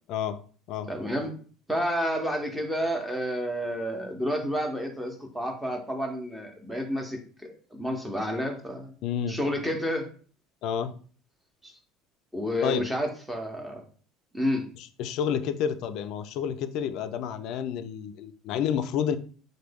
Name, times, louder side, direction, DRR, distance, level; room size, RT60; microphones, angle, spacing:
voice 1, 0.1-0.4 0.7-0.9 9.0-9.4 10.6-10.9 12.6-12.9 14.8-19.2, left 8 dB, 60° left, 10 dB, 0.3 m, -29 dB
voice 2, 0.9-1.3 1.7-8.9 9.3-10.1 11.6-11.7 12.3-13.8 14.3-14.6, equal, 5° right, 3 dB, 0.7 m, -30 dB
3.1 x 2.1 x 3.4 m, 0.42 s
cardioid pair, 135°, 0 cm